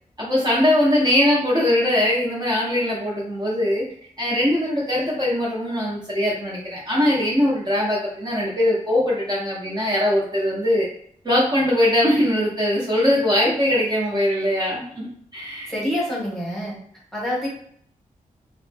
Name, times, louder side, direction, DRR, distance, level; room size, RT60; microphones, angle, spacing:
voice 1, 0.2-3.8 4.2-10.9 11.2-15.1 15.3-15.7, left 1 dB, 30° right, -7 dB, 0.7 m, -21 dB
voice 2, 15.7-16.8 17.1-17.5, equal, ahead, -6 dB, 1.0 m, -26 dB
3.1 x 2.0 x 3.3 m, 0.63 s
wide cardioid pair, 165°, 14 cm